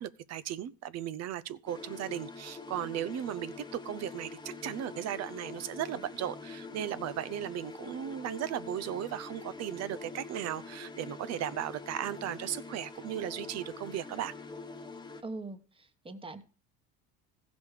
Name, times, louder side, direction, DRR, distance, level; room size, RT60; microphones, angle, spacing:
voice 1, 0.0-14.3, right 11 dB, 50° right, 0.7 m, -36 dB
sound 1, 1.7-15.2, left 4 dB, 15° left, 1.1 m, -45 dB
voice 2, 15.2-16.4, right 2 dB, 15° right, 1.2 m, -42 dB
15.5 x 5.2 x 4.9 m
supercardioid pair, 90°, 33 cm